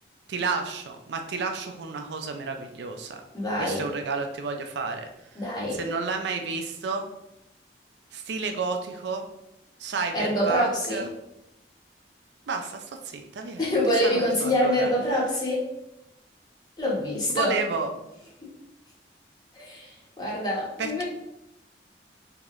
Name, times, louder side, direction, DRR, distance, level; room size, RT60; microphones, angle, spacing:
voice 1, 0.3-3.2 3.6-5.1 5.7-7.1 8.1-9.2 9.8-11.1 12.5-13.6 14.0-14.9 17.3-17.9 20.8-21.0, right 4 dB, 70° right, 5 dB, 0.4 m, -31 dB
voice 2, 3.3-3.9 5.3-5.8 10.1-11.1 13.6-15.7 16.8-17.6 18.4-18.5 19.5-21.0, left 1 dB, 20° left, -5 dB, 1.0 m, -26 dB
3.7 x 2.8 x 3.0 m, 0.85 s
head